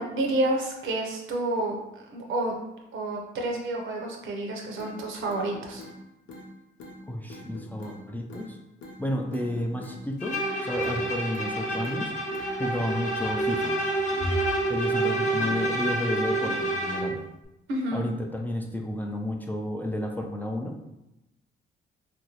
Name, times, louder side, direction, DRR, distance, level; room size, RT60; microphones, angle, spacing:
voice 1, 0.0-1.8 2.1-2.5 2.9-5.8 17.7-18.1, right 1 dB, 80° right, 1 dB, 0.7 m, -29 dB
sound 1, 4.8-4.9 5.3-6.0 6.3-6.5 6.8-7.0 7.3-8.0 8.3-8.5 8.8-9.0 9.3-10.0 10.3-10.5 10.8-11.0 11.3-12.0 12.3-12.5, left 2 dB, 75° left, 0.8 m, -44 dB
voice 2, 7.1-8.6 9.0-12.1 12.6-13.8 14.7-17.2 17.9-20.8, left 1 dB, 10° left, 1 dB, 0.4 m, -31 dB
Bowed string instrument, 10.2-17.2, right 2 dB, 40° left, 0.9 m, -28 dB
2.9 x 2.6 x 2.9 m, 0.91 s
cardioid pair, 90°, 20 cm